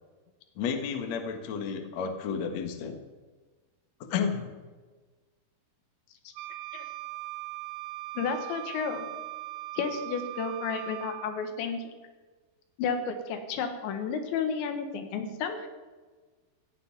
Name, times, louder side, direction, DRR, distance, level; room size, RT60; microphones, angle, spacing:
voice 1, 0.6-3.0 4.1-4.5, left 6 dB, 55° left, 6 dB, 2.0 m, -31 dB
Wind instrument woodwind instrument, 6.4-11.5, right 20 dB, 80° right, 2.7 m, -40 dB
voice 2, 8.2-9.1 9.8-11.8 12.8-15.7, left 5 dB, 80° left, 6 dB, 3.8 m, -32 dB
16.5 x 7.5 x 9.7 m, 1.4 s
omnidirectional pair, 5.2 m